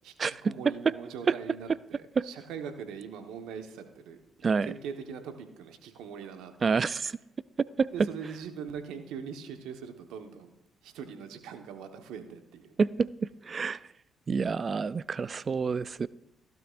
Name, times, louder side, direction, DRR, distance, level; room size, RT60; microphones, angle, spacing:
voice 1, 0.0-4.2 4.6-6.5 7.9-10.5 10.8-12.7, right 7 dB, 85° right, 1.2 m, -41 dB
voice 2, 6.6-7.1 7.8-7.9 12.8-13.1 13.5-13.8 14.3-16.1, right 5 dB, 45° right, 0.3 m, -27 dB
15.5 x 12.0 x 2.5 m
supercardioid pair, 55°, 0 cm